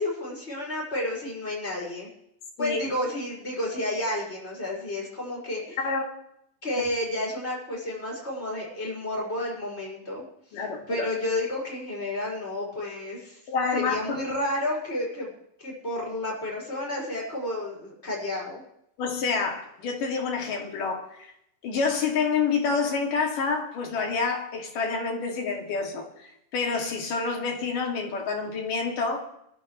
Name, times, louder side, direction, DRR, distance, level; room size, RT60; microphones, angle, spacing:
voice 1, 0.0-2.1 2.6-5.8 6.6-10.2 10.5-10.6 10.9-13.4 13.7-15.3 15.6-18.6, left 1 dB, 15° left, 6.4 m, -31 dB
voice 2, 10.5-11.1 13.5-14.2 19.0-21.3 21.6-29.3, left 5 dB, 65° left, 4.2 m, -28 dB
23.0 x 14.0 x 3.3 m
omnidirectional pair, 4.2 m